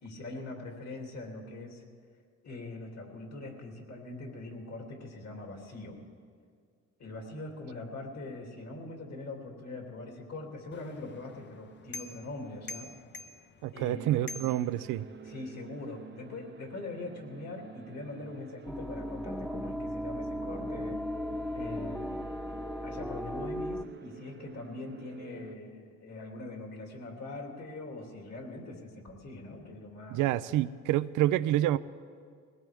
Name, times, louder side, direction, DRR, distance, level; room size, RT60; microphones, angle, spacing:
voice 1, 0.0-1.8 2.4-6.0 7.0-12.9 13.7-14.3 15.2-21.0 21.5-22.4 22.8-30.2, left 2 dB, 60° left, 1 dB, 2.9 m, -42 dB
sound 1, 10.7-15.4, left 3 dB, 35° left, 0.7 m, -47 dB
voice 2, 13.6-15.0 30.1-31.8, right 14 dB, 90° right, 15 dB, 0.5 m, -28 dB
sound 2, 13.7-25.6, right 6 dB, 40° right, 0.6 m, -49 dB
sound 3, 18.7-23.8, left 1 dB, ahead, 0.3 m, -36 dB
21.0 x 17.5 x 3.5 m, 2.1 s
cardioid pair, 90°, 30 cm